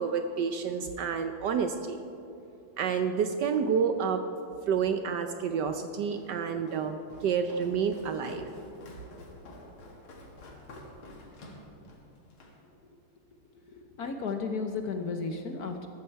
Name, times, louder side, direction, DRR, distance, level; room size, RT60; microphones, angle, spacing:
voice 1, 0.0-2.0 2.8-4.2 4.7-8.5, right 6 dB, 70° right, 8 dB, 1.1 m, -29 dB
Walk footsteps, 6.1-12.6, left 1 dB, 85° left, 2.6 m, -49 dB
voice 2, 13.9-15.9, left 4 dB, 60° left, 5 dB, 1.1 m, -33 dB
14.0 x 12.5 x 4.6 m, 2.9 s
omnidirectional pair, 2.3 m